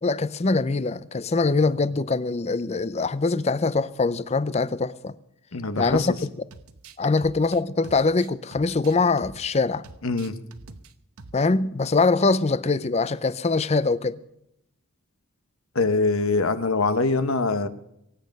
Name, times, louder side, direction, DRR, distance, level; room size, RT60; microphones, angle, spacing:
voice 1, 0.0-5.1 5.8-6.3 7.0-9.8 11.3-14.2, left 3 dB, 30° left, 0.5 m, -23 dB
voice 2, 5.5-6.1 10.0-10.3 15.7-17.7, left 3 dB, 70° left, 1.1 m, -23 dB
sound 1, 5.8-6.2 6.5-9.6 9.8-10.9 11.2-11.4, right 3 dB, 85° right, 1.0 m, -46 dB
23.0 x 9.3 x 5.3 m
head